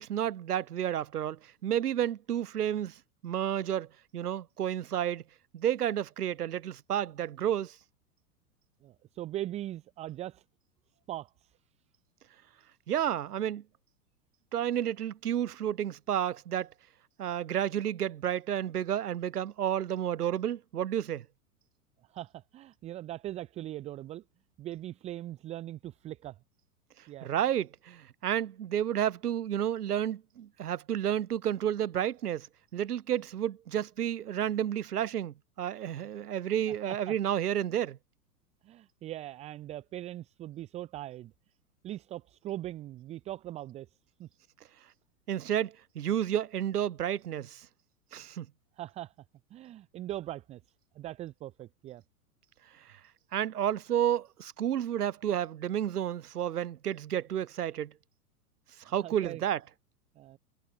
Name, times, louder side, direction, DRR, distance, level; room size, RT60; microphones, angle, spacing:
voice 1, 0.0-5.2 5.5-7.8 12.9-13.6 14.5-16.7 17.2-21.3 27.2-32.5 32.7-38.0 45.3-47.7 48.1-48.5 52.9-53.0 53.3-57.9 58.8-59.6, right 10 dB, 80° right, 0.6 m, -31 dB
voice 2, 8.8-10.4 11.1-11.6 22.1-24.2 24.6-26.4 27.1-27.3 36.7-37.2 38.6-41.3 41.8-44.3 48.8-49.1 49.5-50.6 50.9-52.0 58.9-59.4 60.2-60.4, right 14 dB, 15° right, 0.6 m, -40 dB
figure-of-eight pair, 100°, 45 cm